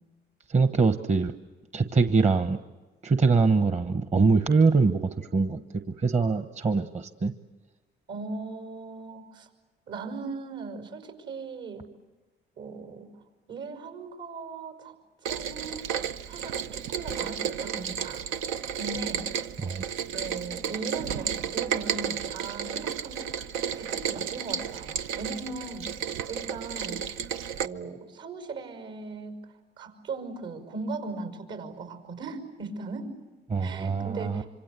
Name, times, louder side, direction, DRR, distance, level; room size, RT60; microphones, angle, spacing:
voice 1, 0.5-1.3 1.7-2.6 3.0-7.3 19.6-19.8 33.5-34.4, right 4 dB, 35° right, 8 dB, 1.1 m, -23 dB
voice 2, 8.1-9.5 9.9-11.9 12.6-13.1 13.5-14.9 15.2-15.8 16.3-18.2 18.7-19.3 20.1-23.3 23.7-25.9 26.3-27.0 27.6-29.5 29.8-33.1 33.6-34.5, right 4 dB, 75° right, 6 dB, 5.8 m, -38 dB
Rain, 15.2-27.7, right 8 dB, 90° right, 0.8 m, -32 dB
26.0 x 25.5 x 8.3 m, 1.2 s
cardioid pair, 90°, 20 cm